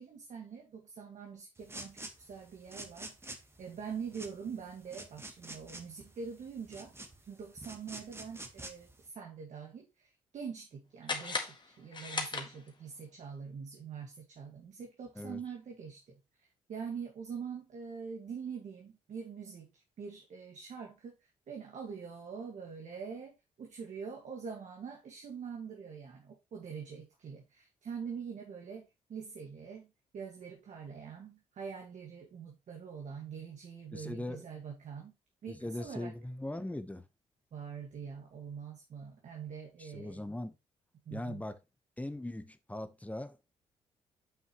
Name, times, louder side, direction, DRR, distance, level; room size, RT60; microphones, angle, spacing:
voice 1, 0.0-6.9 7.2-35.2 35.4-36.1 37.5-40.2 41.1-41.4, right 6 dB, 60° right, 1.8 m, -44 dB
sound 1, 1.6-9.1, right 2 dB, 20° right, 1.5 m, -48 dB
sound 2, 11.0-13.0, left 4 dB, 35° left, 1.8 m, -38 dB
voice 2, 33.9-34.5 35.5-37.1 39.8-40.6 41.1-41.6 42.0-43.5, left 1 dB, 10° left, 1.0 m, -40 dB
7.7 x 5.6 x 3.1 m
supercardioid pair, 65°, 13 cm